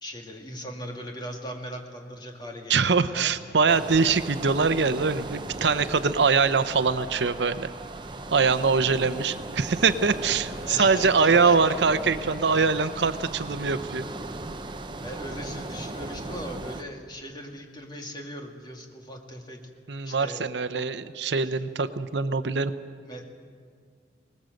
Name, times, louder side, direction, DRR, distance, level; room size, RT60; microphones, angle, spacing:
voice 1, 0.0-3.4 10.6-11.6 15.0-19.6 20.0-20.4 20.7-20.8 23.1-23.3, equal, 25° left, 1 dB, 2.2 m, -39 dB
voice 2, 2.7-7.7 8.3-14.0 19.9-22.7, right 5 dB, 75° right, 12 dB, 0.7 m, -23 dB
sound 1, 3.7-16.8, right 2 dB, 25° right, 0.8 m, -37 dB
20.0 x 19.5 x 7.8 m, 2.1 s
head